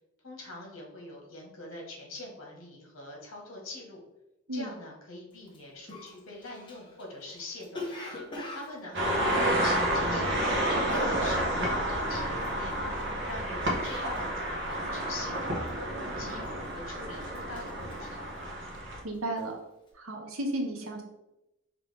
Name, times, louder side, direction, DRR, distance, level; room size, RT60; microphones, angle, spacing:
voice 1, 0.2-4.0 4.5-7.9 8.5-12.7 13.3-16.4 16.7-18.2, left 2 dB, 70° left, -1 dB, 1.4 m, -44 dB
Cough, 5.5-5.6 5.9-10.3 10.6-14.4 14.7-15.1 15.3-15.8 16.3-16.9 17.2-18.9 19.2-19.5, left 1 dB, 25° left, 0.9 m, -42 dB
sound 1, 8.9-19.0, right 1 dB, 60° right, 1.0 m, -30 dB
voice 2, 19.0-19.6 19.9-21.0, right 1 dB, 85° right, 2 dB, 0.9 m, -33 dB
5.1 x 2.9 x 3.4 m, 0.92 s
head